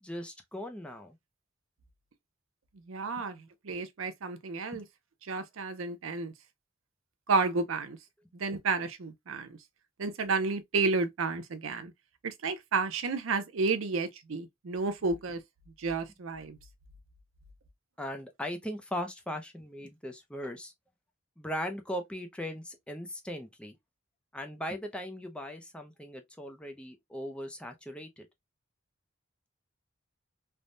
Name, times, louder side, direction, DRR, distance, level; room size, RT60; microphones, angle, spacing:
voice 1, 0.0-1.2 3.2-3.3 4.7-4.8 18.0-20.7 21.4-23.8 24.3-28.3, equal, 5° left, 0.4 m, -39 dB
voice 2, 2.9-4.8 5.3-6.3 7.3-8.0 8.3-9.6 10.0-11.9 12.2-15.4 15.8-16.6, right 4 dB, 75° right, 0.6 m, -31 dB
3.3 x 2.1 x 2.5 m
head